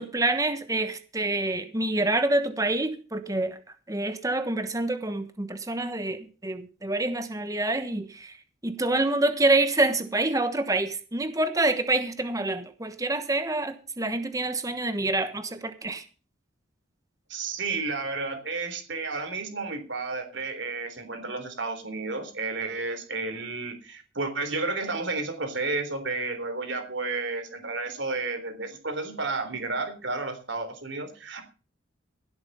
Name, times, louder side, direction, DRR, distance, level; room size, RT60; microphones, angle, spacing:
voice 1, 0.0-3.6 3.9-8.3 8.6-16.0, right 2 dB, 15° right, 1.2 m, -27 dB
voice 2, 17.3-31.4, right 3 dB, 65° right, 3.5 m, -32 dB
16.5 x 8.0 x 5.4 m
head